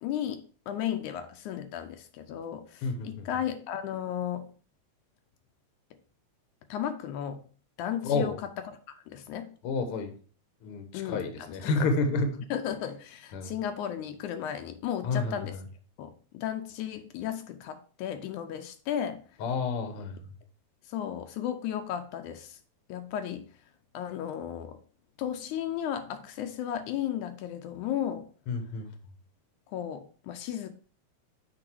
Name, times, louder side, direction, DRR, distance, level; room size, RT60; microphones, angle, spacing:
voice 1, 0.0-4.5 6.7-7.4 7.8-8.3 8.9-9.6 10.9-11.7 12.5-15.5 16.0-19.2 20.8-22.6 22.9-23.5 23.9-24.8 25.2-28.3 29.7-30.7, left 10 dB, 80° left, 7 dB, 2.1 m, -34 dB
voice 2, 2.8-3.2 8.0-8.4 9.6-10.1 10.6-12.4 13.3-13.5 15.0-15.6 19.4-20.2 28.5-28.9, left 3 dB, 60° left, 7 dB, 1.6 m, -30 dB
7.8 x 4.8 x 4.5 m, 0.41 s
omnidirectional pair, 3.5 m